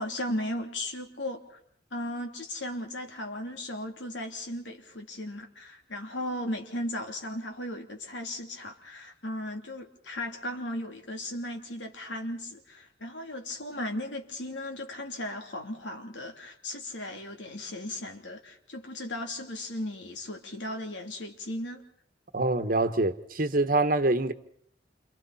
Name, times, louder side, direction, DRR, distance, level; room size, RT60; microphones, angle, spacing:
voice 1, 0.0-1.6 1.9-21.8, left 1 dB, 85° left, 3.0 m, -36 dB
voice 2, 22.3-24.3, right 2 dB, 50° right, 1.2 m, -25 dB
28.5 x 27.0 x 4.3 m
head